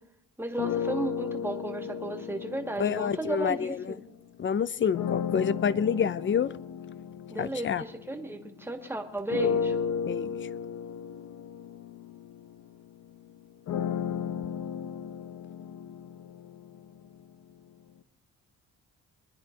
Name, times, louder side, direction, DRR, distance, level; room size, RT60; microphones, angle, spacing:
voice 1, 0.4-4.0 7.3-9.7, right 1 dB, 5° right, 4 dB, 2.1 m, -34 dB
sound 1, 0.6-4.1 4.9-8.7 9.3-17.3, left 7 dB, 65° left, 1.1 m, -34 dB
voice 2, 2.8-3.9 4.4-6.5 7.4-7.8 10.1-10.5, left 7 dB, 40° left, 18 dB, 0.7 m, -28 dB
23.0 x 10.0 x 5.3 m, 0.81 s
cardioid pair, 90°, 30 cm